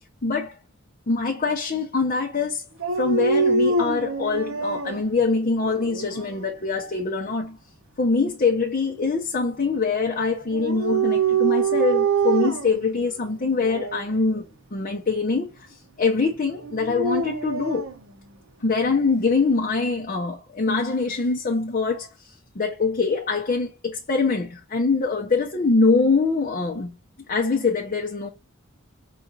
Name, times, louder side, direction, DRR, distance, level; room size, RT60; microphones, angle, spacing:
voice 1, 0.2-0.6 1.1-2.6 2.9-7.6 8.0-14.4 14.7-17.9 18.6-26.9 27.3-28.3, left 4 dB, 40° left, 0.6 m, -24 dB
Dog, 2.8-5.0 5.6-6.4 10.5-12.8 13.6-14.1 16.6-17.9, right 4 dB, 75° right, 0.7 m, -24 dB
4.9 x 2.4 x 4.0 m
head